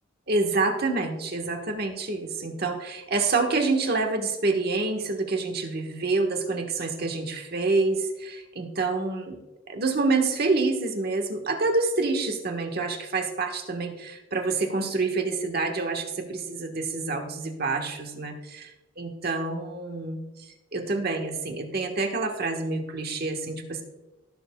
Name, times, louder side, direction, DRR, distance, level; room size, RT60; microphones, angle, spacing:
voice 1, 0.3-9.4 9.7-18.7 19.0-23.8, right 3 dB, 50° right, 4 dB, 1.3 m, -27 dB
18.5 x 6.9 x 2.2 m, 1.1 s
head